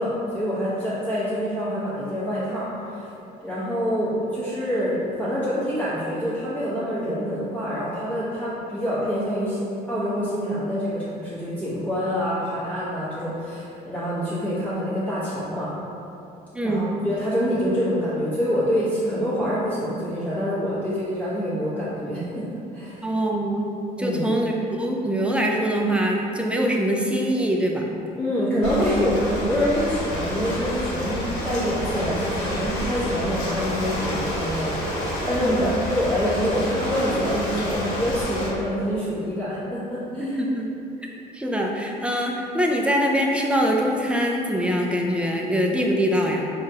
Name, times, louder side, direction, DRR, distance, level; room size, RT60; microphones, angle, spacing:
voice 1, 0.0-3.1 3.4-9.6 9.9-15.7 16.6-22.5 22.7-23.1 24.0-24.2 28.2-34.7 35.2-40.4, equal, 10° left, -13 dB, 1.1 m, -26 dB
voice 2, 16.5-16.9 23.0-23.7 24.0-27.9 35.4-35.7 40.4-40.7 41.3-46.5, equal, 5° right, 0 dB, 0.4 m, -23 dB
Ocean, 28.6-38.5, equal, 85° left, 0.9 m, -29 dB
4.6 x 2.3 x 2.8 m, 2.8 s
cardioid pair, 110°, 17 cm